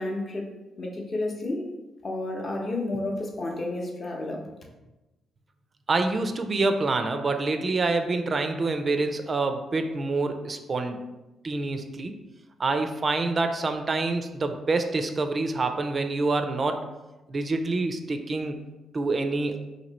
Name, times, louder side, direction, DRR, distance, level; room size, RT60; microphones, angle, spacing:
voice 1, 0.0-1.7 2.0-4.5, left 2 dB, 40° left, 0 dB, 0.7 m, -31 dB
voice 2, 5.9-11.0 11.4-12.1 12.6-16.9 17.3-18.6 18.9-19.6, right 3 dB, 40° right, 6 dB, 0.4 m, -26 dB
2.9 x 2.7 x 4.0 m, 1.0 s
cardioid pair, 85°, 0 cm